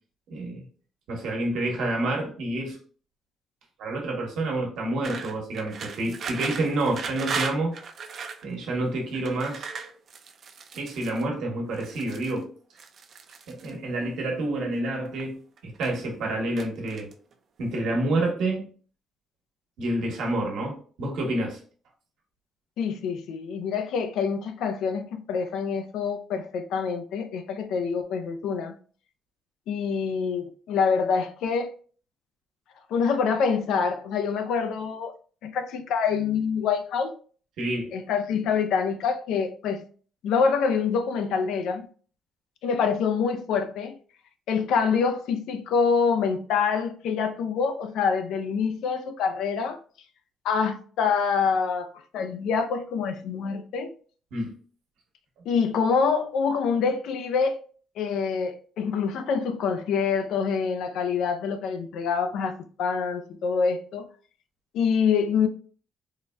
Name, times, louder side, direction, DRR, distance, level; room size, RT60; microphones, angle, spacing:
voice 1, 0.3-0.6 1.1-2.8 3.8-7.8 8.4-9.7 10.7-12.5 13.5-17.1 17.6-18.7 19.8-21.6 37.6-37.9 54.3-54.5, right 2 dB, 80° right, 0.9 m, -28 dB
sound 1, 5.0-8.4 9.1-11.2 11.7-12.4 12.8-13.7 14.6-15.3 15.6-16.1 16.6-17.3, right 5 dB, 60° right, 0.4 m, -37 dB
voice 2, 22.8-28.8 29.7-31.7 32.9-35.1 35.4-37.2 37.9-39.8 40.2-41.9 42.6-43.9 44.5-49.8 50.4-53.9 55.5-57.6 58.0-64.1 64.7-65.5, left 6 dB, 85° left, 0.4 m, -26 dB
3.8 x 2.1 x 2.2 m
cardioid pair, 90°, 0 cm